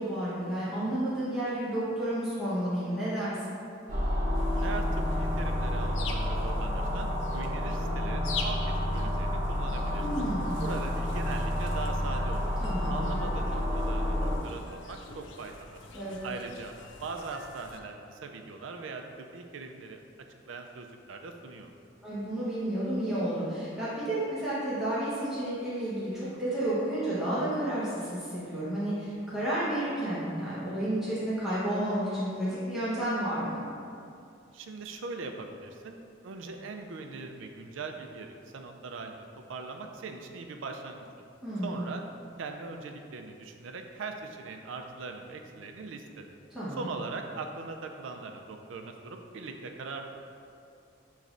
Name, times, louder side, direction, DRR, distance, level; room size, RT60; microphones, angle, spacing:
voice 1, 0.0-3.3 10.0-10.5 12.6-13.1 15.9-16.2 22.0-33.6 41.4-41.8 46.5-46.9, right 1 dB, ahead, -12 dB, 0.9 m, -31 dB
sound 1, 3.9-14.4, left 1 dB, 45° right, 0.9 m, -30 dB
sound 2, 4.3-17.8, left 4 dB, 70° left, 0.4 m, -45 dB
voice 2, 4.6-10.1 10.6-12.5 12.9-15.8 16.2-16.7 17.0-20.0 20.5-21.7 34.5-39.2 39.5-41.1 41.6-42.0 42.4-46.3 46.7-50.0, right 4 dB, 90° right, 4 dB, 0.4 m, -40 dB
6.7 x 3.1 x 2.5 m, 2.5 s
head